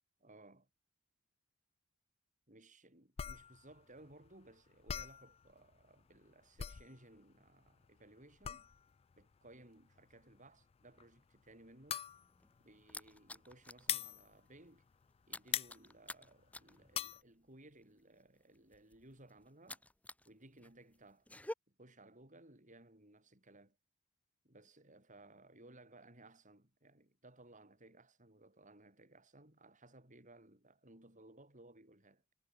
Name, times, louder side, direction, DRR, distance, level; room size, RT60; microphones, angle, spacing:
voice 1, 0.2-0.7 2.5-8.7 9.2-12.0 12.6-14.9 15.3-19.8 20.3-21.3 21.7-23.8 24.4-32.2, right 2 dB, 35° right, 7.9 m, -60 dB
sound 1, 3.2-15.2 15.4-17.2, left 9 dB, 30° left, 0.3 m, -43 dB
sound 2, 12.1-13.9 14.2-14.5 14.7-20.3 20.6-21.5, left 1 dB, 5° left, 1.4 m, -50 dB
head